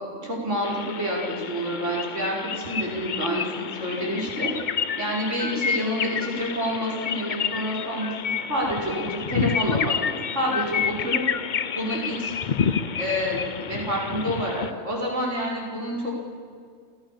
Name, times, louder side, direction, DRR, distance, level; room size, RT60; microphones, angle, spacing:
voice 1, 0.2-4.5 5.0-8.1 8.5-11.2 11.7-12.3 12.9-16.1, equal, 55° right, -3 dB, 5.7 m, -28 dB
sound 1, 0.6-14.7, left 7 dB, 45° left, 0.6 m, -29 dB
30.0 x 15.5 x 7.6 m, 2.1 s
omnidirectional pair, 1.5 m